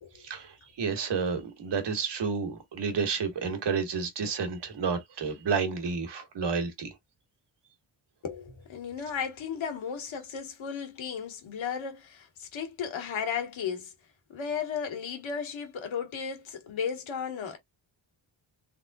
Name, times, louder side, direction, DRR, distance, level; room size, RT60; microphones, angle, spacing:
voice 1, 0.2-6.9, right 5 dB, 65° right, 1.5 m, -30 dB
voice 2, 8.2-13.9 14.3-17.6, left 7 dB, 80° left, 1.5 m, -35 dB
3.7 x 3.6 x 2.3 m
wide cardioid pair, 150°, 46 cm